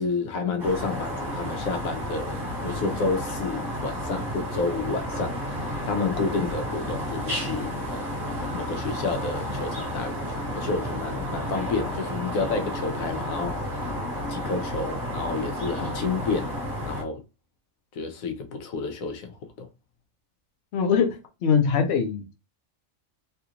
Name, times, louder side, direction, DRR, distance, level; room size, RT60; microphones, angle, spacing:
voice 1, 0.0-8.2 8.5-13.9 14.3-16.5 16.8-17.2 17.9-19.7, left 4 dB, 80° left, 1.1 m, -30 dB
sound 1, 0.6-17.0, equal, 40° right, 1.5 m, -31 dB
voice 2, 20.7-22.4, left 6 dB, 60° left, 0.8 m, -23 dB
3.3 x 2.4 x 2.8 m
omnidirectional pair, 1.4 m